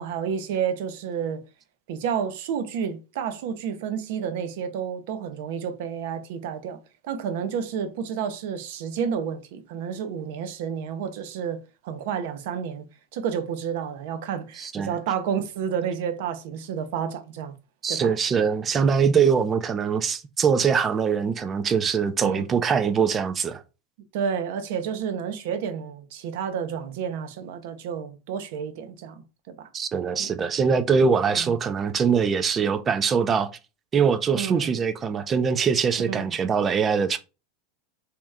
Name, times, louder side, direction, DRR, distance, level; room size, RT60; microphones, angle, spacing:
voice 1, 0.0-1.4 1.9-6.8 7.0-12.8 13.1-17.5 17.9-18.1 22.2-22.6 24.1-29.7 30.2-30.4 31.3-31.5 34.3-34.7 36.1-36.3, right 7 dB, 60° right, 0.7 m, -30 dB
voice 2, 14.6-14.9 17.8-23.6 29.7-33.5 33.9-37.2, right 6 dB, 20° right, 0.3 m, -23 dB
3.1 x 2.9 x 3.5 m
supercardioid pair, 165°, 0 cm